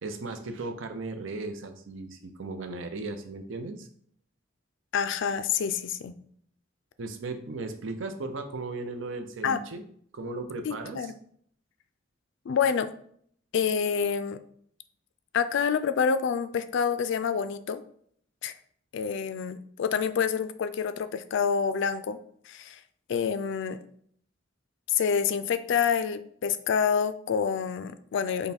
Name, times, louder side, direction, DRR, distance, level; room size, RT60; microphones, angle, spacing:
voice 1, 0.0-3.9 7.0-9.8 10.1-11.1, right 3 dB, 70° right, 7 dB, 0.6 m, -36 dB
voice 2, 4.9-6.1 9.4-9.6 10.6-11.1 12.5-12.9 13.5-14.4 15.3-17.8 18.4-18.5 18.9-22.2 22.5-22.8 23.1-23.8 24.9-28.5, left 6 dB, 65° left, 12 dB, 0.3 m, -27 dB
5.5 x 2.2 x 4.2 m, 0.63 s
head